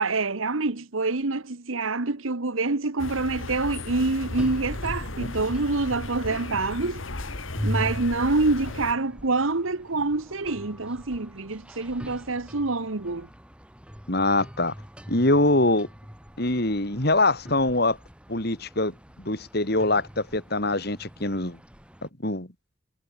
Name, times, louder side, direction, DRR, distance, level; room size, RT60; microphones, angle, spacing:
voice 1, 0.0-7.0 7.6-13.3, right 3 dB, 80° right, 1.3 m, -26 dB
sound 1, 3.0-8.9, left 2 dB, 75° left, 2.0 m, -35 dB
sound 2, 4.2-22.1, equal, 5° right, 5.5 m, -41 dB
voice 2, 14.1-14.7 15.1-15.9 16.4-18.0 18.3-21.6 22.2-22.5, left 2 dB, 50° left, 3.4 m, -24 dB
head